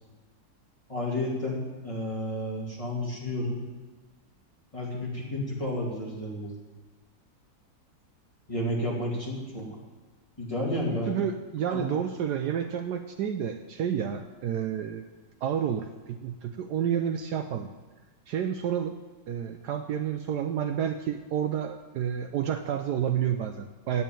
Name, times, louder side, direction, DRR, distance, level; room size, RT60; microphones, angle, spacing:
voice 1, 0.9-3.6 4.7-6.5 8.5-9.7 10.4-11.1 11.7-12.0, left 1 dB, 15° left, -4 dB, 2.7 m, -31 dB
voice 2, 11.1-15.1 15.4-17.7 18.3-18.9 19.3-24.0, right 9 dB, 70° right, 7 dB, 1.1 m, -30 dB
8.7 x 8.4 x 8.8 m, 1.3 s
omnidirectional pair, 2.0 m